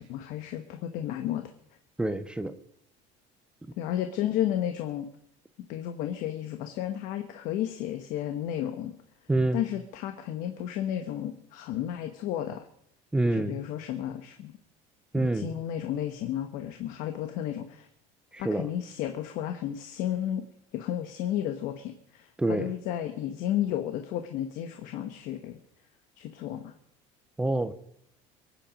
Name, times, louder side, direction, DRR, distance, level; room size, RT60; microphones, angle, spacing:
voice 1, 0.0-1.5 3.8-5.1 5.7-8.9 9.5-12.6 13.4-14.5 15.1-17.9 18.4-20.4 20.7-25.6 26.2-26.7, left 11 dB, 65° left, 7 dB, 1.2 m, -32 dB
voice 2, 2.0-2.5 9.3-9.6 13.1-13.6 15.1-15.5 18.3-18.7 22.4-22.7 27.4-27.7, right 2 dB, 5° right, 11 dB, 0.6 m, -27 dB
23.5 x 9.2 x 5.2 m, 0.71 s
cardioid pair, 165°, 15 cm